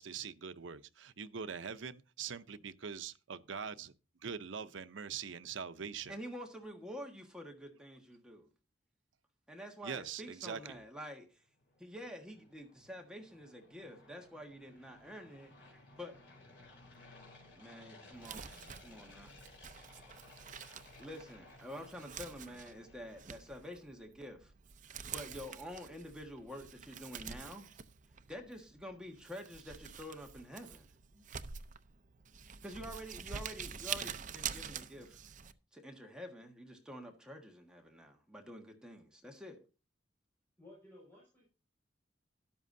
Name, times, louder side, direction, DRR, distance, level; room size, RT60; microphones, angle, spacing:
voice 1, 0.0-3.9 4.2-6.1 9.8-10.8, right 6 dB, 80° right, 0.7 m, -43 dB
voice 2, 6.1-8.5 9.5-11.4 11.8-15.5 16.0-16.1 17.5-18.5 18.8-19.3 21.0-24.5 24.9-27.7 28.3-30.9 32.6-35.2 35.7-39.6, equal, 5° right, 1.5 m, -48 dB
sound 1, 11.4-23.7, left 2 dB, 65° left, 3.6 m, -59 dB
Crumpling crinkling, 18.1-35.5, right 7 dB, 45° right, 0.6 m, -47 dB
voice 3, 40.6-41.5, left 1 dB, 10° left, 5.4 m, -57 dB
13.0 x 11.0 x 2.7 m
head